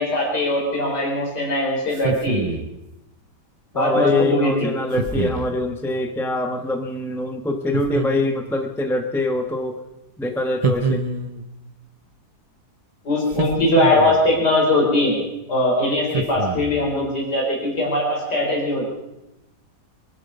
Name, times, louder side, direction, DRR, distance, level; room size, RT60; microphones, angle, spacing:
voice 1, 0.0-2.5 3.7-4.7 13.0-15.2 15.5-18.9, left 1 dB, 75° left, -2 dB, 4.6 m, -20 dB
sound 1, 1.9-2.8 4.9-5.6 7.7-8.5 10.6-11.5 13.3-14.3 16.1-16.9, right 3 dB, 30° right, 0.7 m, -26 dB
voice 2, 3.7-9.8 10.2-11.0, left 2 dB, ahead, 4 dB, 0.9 m, -24 dB
24.0 x 11.0 x 5.4 m, 0.94 s
omnidirectional pair, 1.8 m